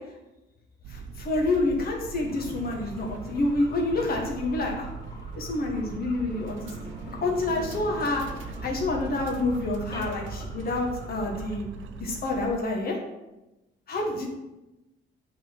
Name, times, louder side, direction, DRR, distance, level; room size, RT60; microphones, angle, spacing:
sound 1, 0.8-12.5, right 5 dB, 75° right, 0.8 m, -40 dB
voice 1, 0.9-4.9 5.4-6.7 7.2-8.2 8.6-11.7 12.0-13.0 13.9-14.3, left 2 dB, 50° left, -1 dB, 1.6 m, -28 dB
sound 2, 2.3-11.6, left 2 dB, 20° left, 2.8 m, -45 dB
sound 3, 6.2-10.2, right 2 dB, 10° right, 1.5 m, -45 dB
8.3 x 4.1 x 6.0 m, 1.0 s
cardioid pair, 90°, 20 cm